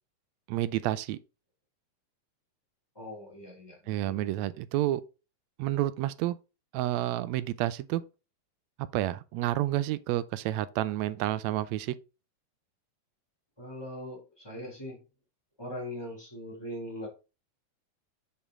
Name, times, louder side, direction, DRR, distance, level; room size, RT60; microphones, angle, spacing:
voice 1, 0.5-1.2 3.9-5.0 5.6-6.4 6.7-8.0 8.9-11.9, right 14 dB, 80° right, 1.7 m, -29 dB
voice 2, 2.9-4.2 13.6-15.0 15.6-17.1, left 1 dB, 10° left, 2.8 m, -41 dB
6.5 x 5.6 x 3.7 m
omnidirectional pair, 3.5 m